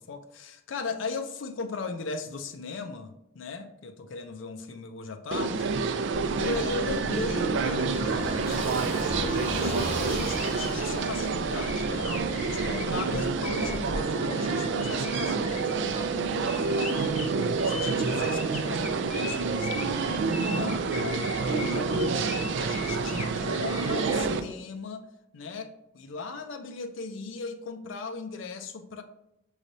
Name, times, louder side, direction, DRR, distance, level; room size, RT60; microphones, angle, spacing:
voice 1, 0.0-5.8 6.4-12.1 12.5-17.2 17.6-25.1 25.3-29.0, left 4 dB, 75° left, 0.5 m, -37 dB
sound 1, 5.3-24.4, right 4 dB, 65° right, 0.4 m, -28 dB
Car passing by / Engine, 6.1-14.0, right 1 dB, 35° right, 1.0 m, -37 dB
sound 2, 10.0-24.3, left 4 dB, 35° left, 0.7 m, -41 dB
6.2 x 3.2 x 2.6 m
head